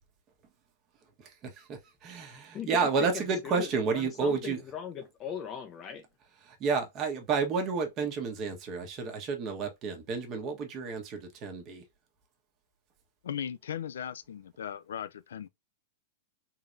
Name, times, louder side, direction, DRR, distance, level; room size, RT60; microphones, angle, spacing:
voice 1, 1.2-4.6 6.4-11.8, right 5 dB, 30° right, 1.3 m, -31 dB
voice 2, 2.5-2.9 3.4-6.0, left 8 dB, 25° left, 0.6 m, -39 dB
voice 3, 13.2-15.5, left 9 dB, 85° left, 0.4 m, -37 dB
3.9 x 3.2 x 2.5 m
hypercardioid pair, 140°, 0 cm